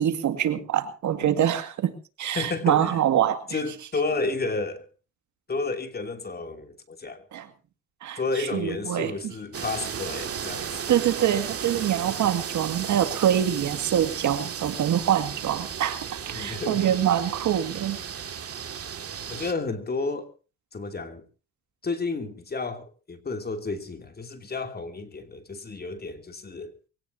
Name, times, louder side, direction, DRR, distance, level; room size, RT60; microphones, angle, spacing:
voice 1, 0.0-1.9 2.2-3.4 7.3-7.5 8.0-9.3 10.9-18.0, right 10 dB, 70° right, 2.2 m, -25 dB
voice 2, 2.3-3.0 3.5-4.9 5.5-7.2 8.2-11.0 16.3-16.8 19.3-20.3 20.7-21.2 21.8-26.7, left 3 dB, 30° left, 2.9 m, -31 dB
sound 1, 9.5-19.5, right 7 dB, 50° right, 2.2 m, -34 dB
23.5 x 17.5 x 2.8 m
cardioid pair, 90°, 30 cm